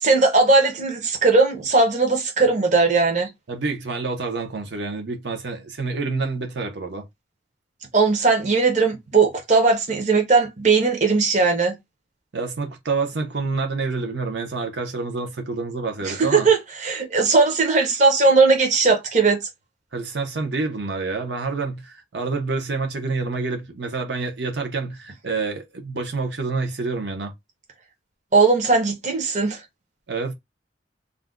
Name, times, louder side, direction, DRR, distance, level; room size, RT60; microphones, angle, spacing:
voice 1, 0.0-3.3 7.9-11.7 16.0-19.4 28.3-29.6, right 3 dB, 40° right, 0.7 m, -18 dB
voice 2, 3.5-7.1 12.3-16.5 19.9-27.3 30.1-30.3, right 3 dB, 75° right, 0.7 m, -28 dB
2.5 x 2.2 x 3.4 m
head